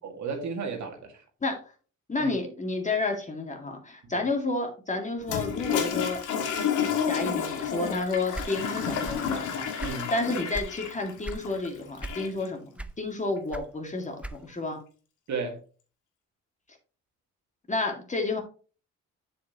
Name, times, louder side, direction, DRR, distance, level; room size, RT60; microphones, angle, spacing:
voice 1, 0.0-1.2 2.2-2.3 4.0-4.2 9.8-10.1 15.3-15.6, right 4 dB, 70° right, 2.1 m, -34 dB
voice 2, 2.1-6.2 6.8-14.8 17.7-18.4, left 2 dB, 25° left, 2.1 m, -31 dB
Toilet flush, 5.2-12.5, left 7 dB, 80° left, 1.9 m, -30 dB
sound 1, 8.3-9.3 9.6-10.8 11.2-11.5 12.0-12.4 12.8-14.7, right 2 dB, 5° right, 0.6 m, -38 dB
7.7 x 7.1 x 2.9 m
cardioid pair, 90°, 30 cm